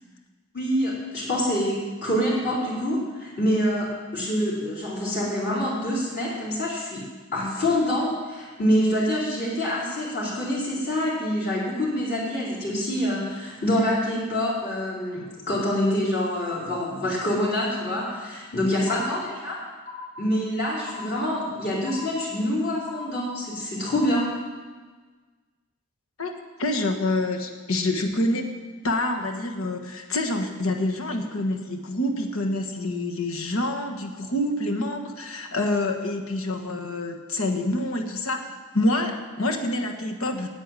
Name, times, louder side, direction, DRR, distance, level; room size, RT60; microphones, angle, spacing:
voice 1, 0.5-3.9 4.1-7.0 7.3-19.6 20.2-24.3, left 1 dB, 50° left, -7 dB, 4.4 m, -26 dB
sound 1, 18.9-19.5 19.9-20.5 20.9-21.5 21.9-22.5 22.9-23.5 23.9-24.4, left 4 dB, 25° left, 2.8 m, -40 dB
voice 2, 26.6-40.5, left 1 dB, 80° left, 3 dB, 1.5 m, -27 dB
10.0 x 9.0 x 9.0 m, 1.4 s
head